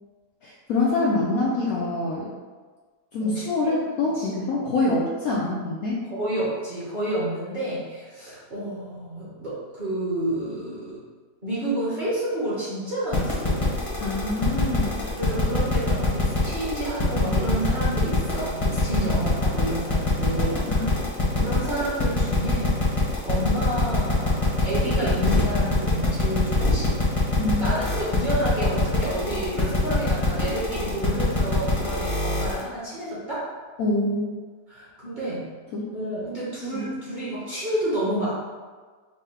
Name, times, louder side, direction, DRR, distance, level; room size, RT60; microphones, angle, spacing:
voice 1, 0.4-2.3 3.1-6.0 14.0-15.0 19.0-19.1 20.7-20.9 21.3-21.5 27.4-27.7 33.8-34.3 35.7-35.9 36.7-36.8, left 2 dB, 70° left, -5 dB, 0.8 m, -25 dB
voice 2, 3.2-3.8 4.1-4.3 6.0-11.0 11.4-13.7 15.2-20.6 21.4-22.7 23.2-27.1 27.6-33.4 34.7-35.5 35.9-38.4, right 1 dB, 35° right, -9 dB, 0.9 m, -30 dB
sound 1, 13.1-32.6, left 1 dB, 30° left, 0.7 m, -23 dB
5.4 x 2.1 x 3.4 m, 1.5 s
omnidirectional pair, 1.9 m